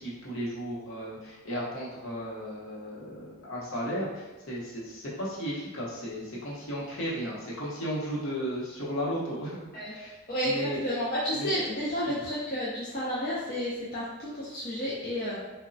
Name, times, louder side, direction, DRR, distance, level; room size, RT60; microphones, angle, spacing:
voice 1, 0.0-9.6 9.9-10.2 10.4-10.8 11.3-11.5 12.0-12.2, equal, 65° left, -7 dB, 0.8 m, -35 dB
voice 2, 10.8-15.4, equal, 40° left, -8 dB, 0.4 m, -31 dB
3.0 x 2.1 x 2.5 m, 1.1 s
head